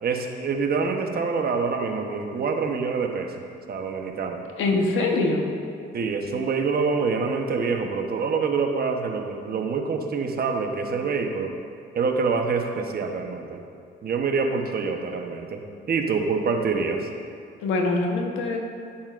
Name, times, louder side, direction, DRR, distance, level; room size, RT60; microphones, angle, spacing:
voice 1, 0.0-3.3 3.7-4.4 5.9-11.5 11.9-13.6 14.0-15.6 15.9-17.1, right 4 dB, 50° right, 4 dB, 1.0 m, -26 dB
voice 2, 4.6-5.4 17.6-18.6, left 2 dB, 85° left, 2 dB, 1.2 m, -23 dB
15.0 x 7.2 x 2.5 m, 2.3 s
cardioid pair, 90°, 20 cm